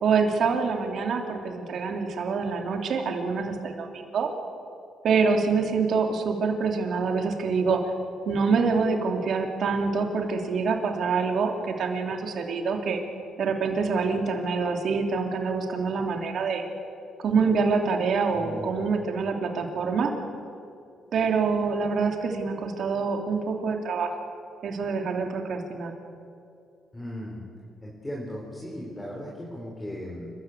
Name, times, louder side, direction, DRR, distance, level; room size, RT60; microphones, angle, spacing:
voice 1, 0.0-4.3 5.0-7.9 8.2-13.0 13.4-16.6 17.2-20.1 21.1-24.1 24.6-25.9, right 5 dB, 65° right, 3 dB, 3.0 m, -26 dB
voice 2, 18.3-18.8 26.9-27.4 27.8-30.3, equal, 15° left, -2 dB, 4.5 m, -37 dB
29.0 x 13.5 x 8.2 m, 2.5 s
cardioid pair, 90°, 0 cm